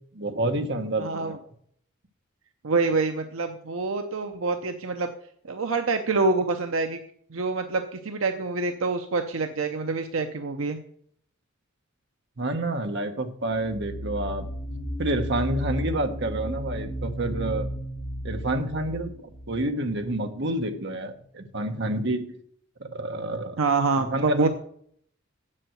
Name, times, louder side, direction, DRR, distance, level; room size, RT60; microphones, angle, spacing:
voice 1, 0.1-1.4 12.4-14.5 15.0-17.7 18.2-22.3 22.8-23.6 24.0-24.5, right 1 dB, 55° right, 6 dB, 1.2 m, -29 dB
voice 2, 1.0-1.4 2.6-5.1 5.4-7.0 7.3-10.8 23.6-24.5, right 3 dB, 75° right, 6 dB, 0.7 m, -26 dB
sound 1, 13.5-20.1, equal, 25° left, 2.7 m, -34 dB
7.7 x 7.6 x 7.8 m, 0.65 s
head